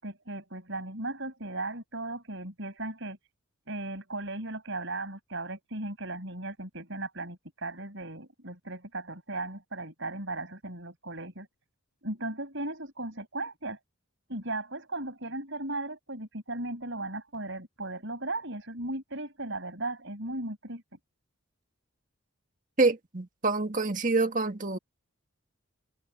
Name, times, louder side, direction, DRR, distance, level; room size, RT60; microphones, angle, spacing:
voice 1, 0.0-3.2 3.7-11.5 12.0-13.8 14.3-20.8, right 2 dB, 55° right, 7.9 m, -36 dB
voice 2, 22.8-24.8, right 3 dB, 35° right, 2.0 m, -26 dB
head